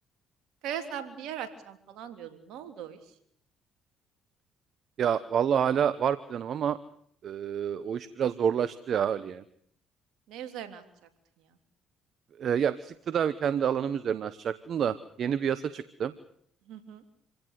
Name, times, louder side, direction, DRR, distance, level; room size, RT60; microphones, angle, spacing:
voice 1, 0.6-3.0 10.3-10.8 16.7-17.0, right 9 dB, 75° right, 8 dB, 3.3 m, -39 dB
voice 2, 5.0-6.8 7.2-9.4 12.4-16.1, right 8 dB, 55° right, 15 dB, 1.1 m, -28 dB
27.0 x 17.0 x 8.4 m, 0.66 s
supercardioid pair, 65°, 0 cm